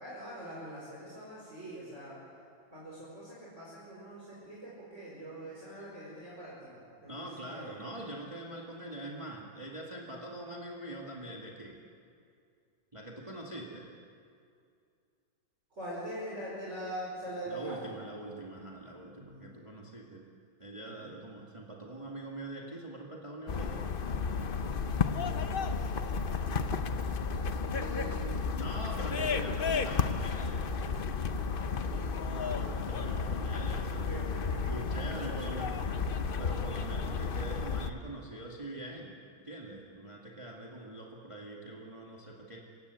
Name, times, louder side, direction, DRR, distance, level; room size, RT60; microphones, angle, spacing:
voice 1, 0.0-2.2 2.7-7.8 15.7-17.9 19.1-19.7 20.9-21.2 26.1-28.5 29.0-29.9 31.4-33.3 33.7-36.0, right 1 dB, 35° right, -6 dB, 5.4 m, -44 dB
voice 2, 7.1-11.8 12.9-13.9 17.5-20.3 20.6-23.9 28.5-30.7 32.4-34.2 34.6-35.8 36.4-42.6, right 1 dB, 15° right, -1 dB, 2.0 m, -43 dB
sound 1, 23.5-37.9, left 5 dB, 90° left, 0.4 m, -32 dB
27.0 x 16.5 x 8.2 m, 2.4 s
omnidirectional pair, 2.2 m